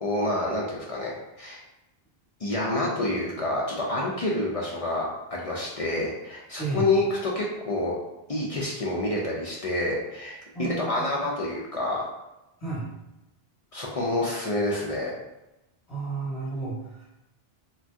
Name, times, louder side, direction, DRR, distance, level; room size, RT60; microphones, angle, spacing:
voice 1, 0.0-1.6 2.4-7.9 8.3-12.0 13.7-15.1, left 2 dB, 55° left, -3 dB, 0.4 m, -28 dB
voice 2, 6.6-6.9 10.5-11.2 12.6-12.9 15.9-17.1, right 3 dB, 40° left, -9 dB, 0.9 m, -32 dB
2.6 x 2.2 x 3.3 m, 0.95 s
omnidirectional pair, 1.0 m